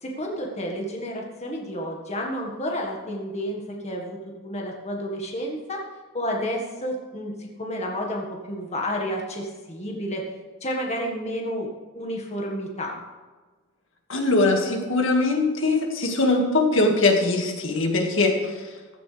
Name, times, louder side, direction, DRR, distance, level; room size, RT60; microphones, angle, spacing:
voice 1, 0.0-5.8 6.1-10.3 10.6-13.0, equal, 35° left, 0 dB, 1.7 m, -31 dB
voice 2, 14.1-18.6, left 2 dB, 65° left, 2 dB, 2.1 m, -21 dB
15.5 x 13.5 x 3.4 m, 1.3 s
head